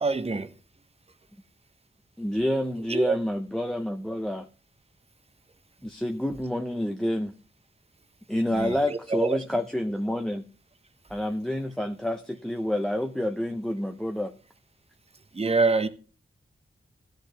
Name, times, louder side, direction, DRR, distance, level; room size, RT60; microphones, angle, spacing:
voice 1, 0.0-0.5 2.9-3.2 8.6-9.4 15.3-15.9, right 4 dB, 30° right, 0.9 m, -25 dB
voice 2, 2.2-4.5 5.8-7.3 8.3-10.5 11.1-14.3, left 1 dB, 5° left, 0.7 m, -28 dB
15.5 x 6.5 x 3.3 m
wide cardioid pair, 110°, 20 cm